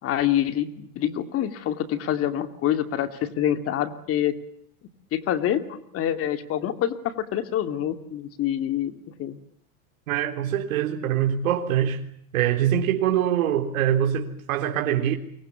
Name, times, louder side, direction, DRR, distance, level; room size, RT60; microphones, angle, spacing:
voice 1, 0.0-4.3 5.1-9.4, left 11 dB, 35° left, 2.6 m, -26 dB
voice 2, 10.1-12.1 12.3-15.1, right 10 dB, 75° right, 3.6 m, -24 dB
29.0 x 24.0 x 7.1 m
supercardioid pair, 140°, 42 cm